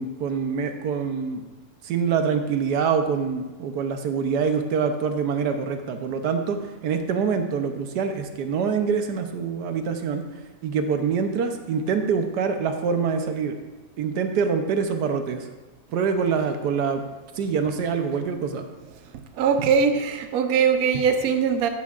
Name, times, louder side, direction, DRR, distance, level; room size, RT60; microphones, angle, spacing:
voice 1, 0.0-1.4 1.8-10.3 10.6-13.5 14.0-15.5 15.9-17.0 17.4-18.6, right 6 dB, 85° right, 6 dB, 1.4 m, -25 dB
voice 2, 19.3-21.7, right 6 dB, 65° right, 6 dB, 1.2 m, -21 dB
14.5 x 10.0 x 2.5 m, 1.1 s
omnidirectional pair, 1.7 m